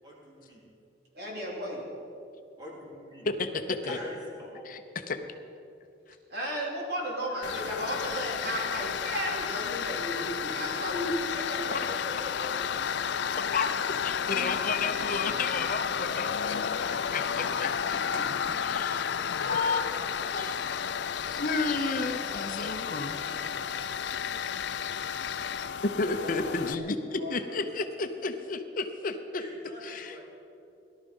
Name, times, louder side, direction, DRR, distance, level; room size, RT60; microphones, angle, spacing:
voice 1, 0.0-0.6 2.6-3.3 3.8-4.7 11.3-12.3 17.6-17.8 19.4-20.7 22.1-23.9 24.3-24.6 29.4-30.3, left 1 dB, 25° right, -4 dB, 3.6 m, -43 dB
voice 2, 1.1-1.8 6.3-11.1 17.7-17.8 18.1-18.2 26.1-26.8 27.2-27.6, equal, 60° right, -3 dB, 3.7 m, -34 dB
voice 3, 3.2-4.0 4.6-5.2 13.5-16.6 16.9-18.0 18.6-19.1 19.4-19.8 20.3-20.6 21.2-23.2 26.0-29.4 29.8-30.3, left 4 dB, 50° left, 7 dB, 0.8 m, -32 dB
Tools, 7.4-26.7, left 7 dB, 70° left, 0.4 m, -32 dB
18.0 x 12.0 x 5.5 m, 2.7 s
head